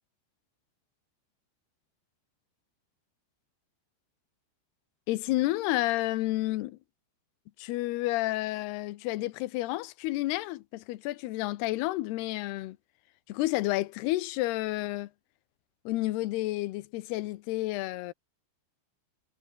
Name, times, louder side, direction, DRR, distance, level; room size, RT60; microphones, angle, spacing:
voice 1, 5.1-6.8 7.6-12.8 13.3-15.1 15.9-18.1, left 18 dB, 75° left, 2.6 m, -30 dB
omnidirectional pair, 5.3 m